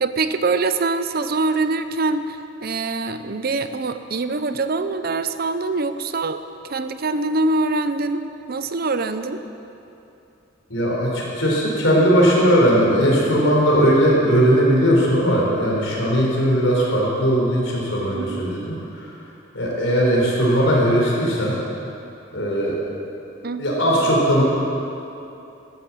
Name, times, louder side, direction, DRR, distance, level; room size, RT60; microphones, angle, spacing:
voice 1, 0.0-6.4 6.7-9.4 18.1-18.5 23.4-23.6, right 3 dB, 50° right, 10 dB, 0.7 m, -24 dB
voice 2, 10.7-19.1 19.5-21.6 22.3-22.8 23.6-24.4, equal, 75° left, -3 dB, 4.2 m, -18 dB
13.5 x 12.5 x 7.4 m, 2.8 s
head